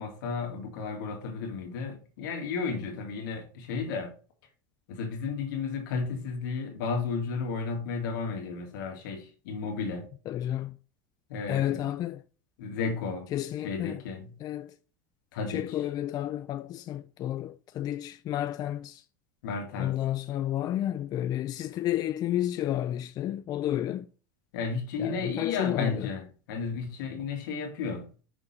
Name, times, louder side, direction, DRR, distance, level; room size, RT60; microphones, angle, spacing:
voice 1, 0.0-4.1 4.9-10.1 11.3-11.9 12.6-13.3 13.6-14.3 15.3-15.8 19.4-20.0 24.5-28.2, left 5 dB, 75° left, 2.1 m, -33 dB
voice 2, 10.3-10.8 11.5-12.2 13.3-14.0 14.4-14.7 15.5-19.0 19.8-24.1 25.0-26.1, left 12 dB, 40° left, 0.4 m, -31 dB
6.1 x 3.9 x 4.3 m
supercardioid pair, 110°, 11 cm